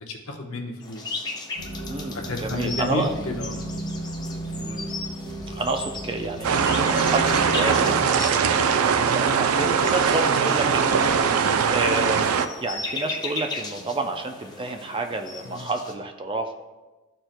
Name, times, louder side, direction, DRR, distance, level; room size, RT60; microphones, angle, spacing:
voice 1, 0.1-1.2 2.1-3.6 11.1-11.4 15.5-15.7, left 2 dB, 75° left, 2 dB, 1.0 m, -31 dB
sound 1, 0.8-15.9, left 3 dB, 20° left, 0.7 m, -37 dB
sound 2, 1.6-8.0, right 1 dB, 65° right, 2.0 m, -34 dB
voice 2, 1.9-3.2 4.5-5.0 5.5-16.5, right 2 dB, 25° right, 5 dB, 0.4 m, -30 dB
sound 3, 6.4-12.5, right 6 dB, 85° right, 0.4 m, -21 dB
13.0 x 4.5 x 2.2 m, 1.2 s
head